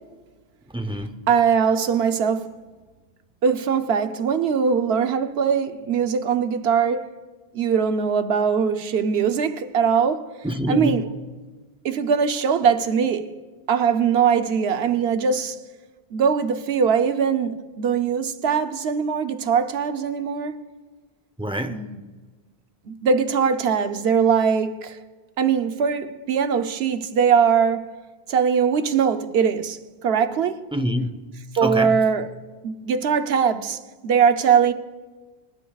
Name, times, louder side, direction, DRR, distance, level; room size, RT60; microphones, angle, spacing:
voice 1, 0.7-1.3 10.4-11.1 21.4-21.9 30.7-31.1 31.6-32.0, equal, 5° right, 0.6 m, -26 dB
voice 2, 1.3-2.5 3.4-7.1 7.5-10.3 10.7-11.1 11.8-13.3 13.7-15.6 16.1-20.6 21.7-22.0 22.9-25.0 25.4-27.8 28.3-30.6 31.6-32.3 32.6-34.7, right 6 dB, 80° right, 1.0 m, -21 dB
25.0 x 12.0 x 2.4 m
omnidirectional pair, 1.0 m